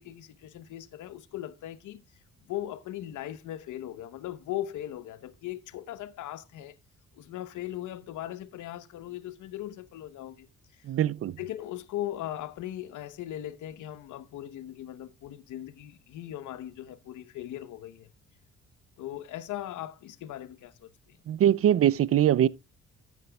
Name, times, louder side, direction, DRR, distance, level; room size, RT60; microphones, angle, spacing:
voice 1, 0.0-2.0 2.5-6.8 7.1-10.5 11.4-18.1 19.0-21.2, left 13 dB, 80° left, 1.0 m, -39 dB
voice 2, 10.8-11.4 21.3-22.5, right 11 dB, 50° right, 0.5 m, -22 dB
13.0 x 9.6 x 2.3 m
cardioid pair, 90°, 30 cm